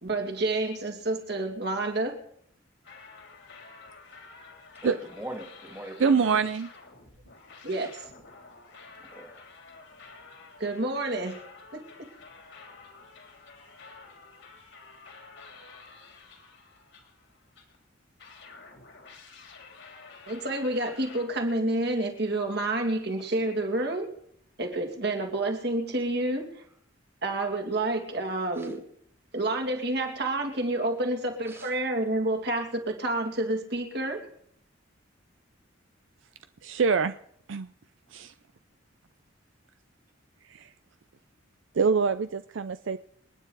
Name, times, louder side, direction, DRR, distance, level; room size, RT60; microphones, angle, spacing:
voice 1, 0.0-2.2 7.6-8.0 10.6-11.4 11.7-12.1 20.3-24.1 24.6-26.6 27.2-28.8 29.3-34.3, right 2 dB, 55° right, 2 dB, 2.6 m, -29 dB
sound 1, 2.8-17.8 18.2-21.3, left 4 dB, 65° left, 3.2 m, -50 dB
voice 2, 4.8-6.4 9.0-9.4 28.5-28.7 31.4-31.7, right 1 dB, 10° right, 3 dB, 2.1 m, -41 dB
voice 3, 6.0-6.7 36.6-37.1 37.5-37.7 38.1-38.3 40.5-40.7 41.7-43.0, right 5 dB, 70° right, 11 dB, 0.5 m, -25 dB
27.5 x 9.6 x 4.0 m, 0.69 s
head